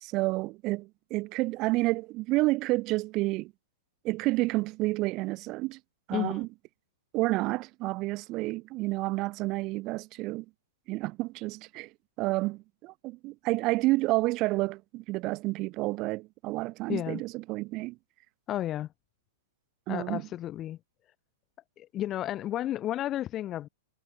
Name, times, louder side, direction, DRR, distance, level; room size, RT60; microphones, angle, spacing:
voice 1, 0.0-3.5 4.0-5.8 6.1-6.5 7.1-10.5 10.9-11.9 12.2-18.0 19.9-20.2, right 21 dB, 35° right, 3.5 m, -30 dB
voice 2, 6.1-6.5 16.9-17.2 18.5-18.9 19.9-20.8 21.8-23.7, left 12 dB, 25° left, 3.5 m, -32 dB
hypercardioid pair, 145°, 0 cm